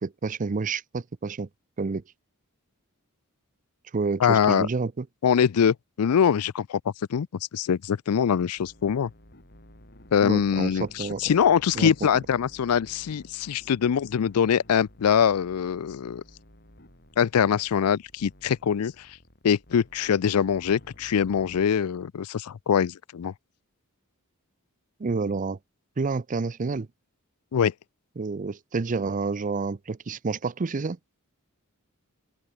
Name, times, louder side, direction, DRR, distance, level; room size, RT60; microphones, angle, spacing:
voice 1, 0.0-1.5 1.8-2.0 3.9-5.1 10.2-11.3 11.7-11.9 25.0-25.6 26.0-26.9 28.2-31.0, right 4 dB, 35° right, 0.5 m, -29 dB
voice 2, 4.2-4.7 5.2-6.8 7.1-7.3 7.5-9.1 10.1-16.2 17.2-19.1 19.4-23.3 27.5-27.7, left 7 dB, 80° left, 0.4 m, -23 dB
sound 1, 8.6-21.7, left 1 dB, 50° left, 4.4 m, -53 dB
open air
head